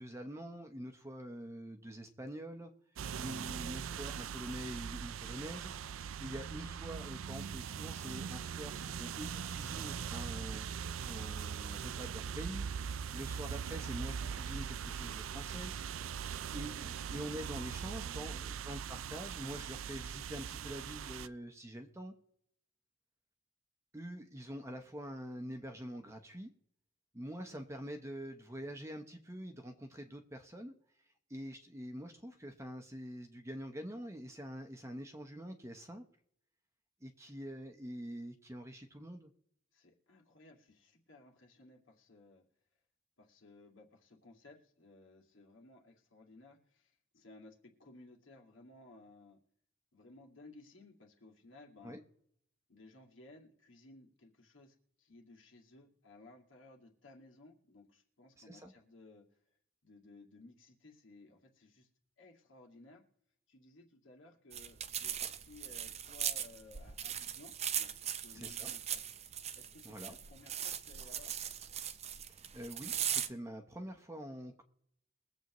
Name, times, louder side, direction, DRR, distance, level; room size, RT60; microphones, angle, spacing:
voice 1, 0.0-2.7 3.1-5.7 6.2-12.7 13.1-15.7 16.5-22.1 23.9-26.5 27.1-30.7 31.3-36.0 37.0-39.3 51.8-52.0 58.5-58.7 68.3-68.7 69.8-70.2 72.3-74.6, equal, 15° right, 5 dB, 1.0 m, -45 dB
sound 1, 3.0-21.3, right 7 dB, 85° right, 0.4 m, -41 dB
voice 2, 16.0-17.1 17.5-18.4 39.7-42.5 43.2-49.4 49.9-52.0 52.7-59.4 59.8-61.9 62.2-63.0 63.5-69.0 69.5-71.3, left 2 dB, 70° left, 1 dB, 2.3 m, -59 dB
sound 2, 64.5-73.3, right 9 dB, 30° right, 0.6 m, -39 dB
22.5 x 8.0 x 3.1 m, 0.71 s
head